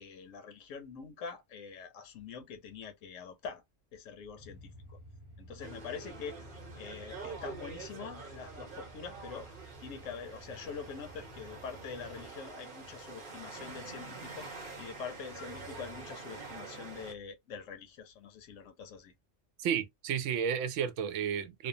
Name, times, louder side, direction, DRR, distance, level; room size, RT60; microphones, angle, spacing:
voice 1, 0.0-3.6 3.9-5.0 5.4-6.4 6.7-9.5 9.8-19.1, left 6 dB, 90° left, 1.0 m, -45 dB
sound 1, 4.4-12.3, equal, 25° right, 0.7 m, -53 dB
sound 2, 5.6-17.1, right 4 dB, 50° right, 0.9 m, -46 dB
voice 2, 19.6-21.7, right 8 dB, 80° right, 0.9 m, -32 dB
2.7 x 2.1 x 2.6 m
omnidirectional pair, 1.3 m